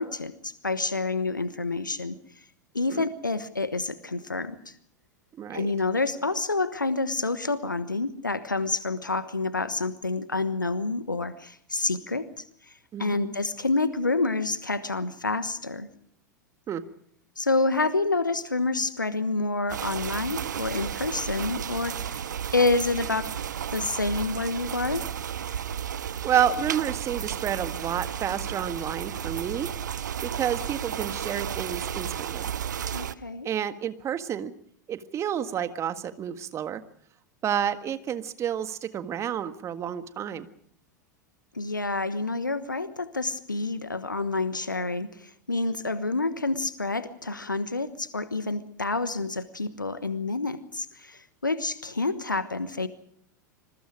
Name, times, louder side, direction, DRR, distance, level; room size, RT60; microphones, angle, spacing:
voice 1, 0.0-2.2 2.7-4.7 5.5-12.7 13.0-15.9 17.4-23.3 23.7-25.1 32.9-33.5 41.5-52.9, left 3 dB, 85° left, 14 dB, 1.2 m, -28 dB
voice 2, 5.4-5.7 12.9-13.3 16.7-16.8 26.2-29.7 30.2-32.5 33.4-34.5 34.9-36.8 37.4-40.5, right 9 dB, 30° right, 11 dB, 1.6 m, -30 dB
sound 1, 19.7-33.1, right 9 dB, 70° right, 0.8 m, -33 dB
27.0 x 21.5 x 5.1 m, 0.65 s
figure-of-eight pair, 90°, 10 cm